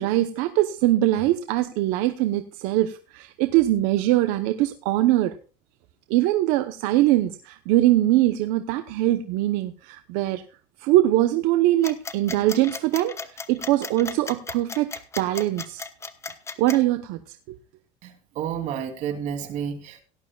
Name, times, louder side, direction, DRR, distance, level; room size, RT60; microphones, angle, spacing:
voice 1, 0.0-5.3 6.1-10.4 10.8-13.1 13.5-15.8 16.6-17.4, right 15 dB, 85° right, 9 dB, 0.9 m, -22 dB
sound 1, 11.8-16.8, left 4 dB, 20° left, 1.1 m, -35 dB
voice 2, 18.0-20.0, right 8 dB, 60° right, 5 dB, 3.0 m, -31 dB
17.5 x 12.0 x 2.4 m, 0.35 s
cardioid pair, 135°, 14 cm